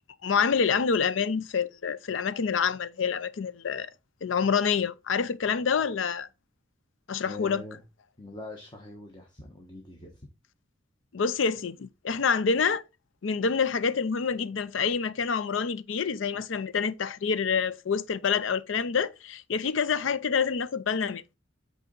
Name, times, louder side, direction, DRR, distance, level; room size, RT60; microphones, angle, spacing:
voice 1, 0.2-3.9 4.2-6.3 7.1-7.6 11.1-12.8 13.2-21.2, left 6 dB, 70° left, 0.5 m, -27 dB
voice 2, 7.2-7.8 8.2-10.2, left 2 dB, 25° left, 1.2 m, -42 dB
8.4 x 3.9 x 3.8 m
head